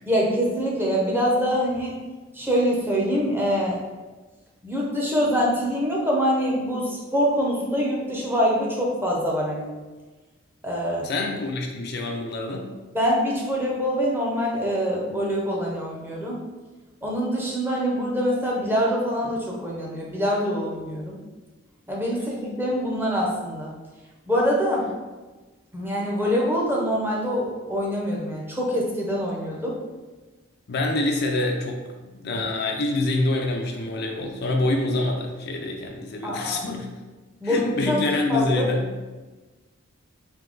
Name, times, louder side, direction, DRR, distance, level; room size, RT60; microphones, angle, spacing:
voice 1, 0.1-1.9 2.3-3.7 4.6-9.7 10.6-11.1 12.9-16.4 17.0-21.2 21.9-23.7 24.3-24.9 25.7-29.8 36.2-36.7 37.4-38.0 38.3-38.7, equal, 10° right, -3 dB, 0.6 m, -24 dB
voice 2, 11.0-12.7 30.7-31.8 32.1-36.9 37.4-38.9, left 2 dB, 50° left, 2 dB, 0.4 m, -26 dB
3.5 x 2.8 x 3.8 m, 1.2 s
head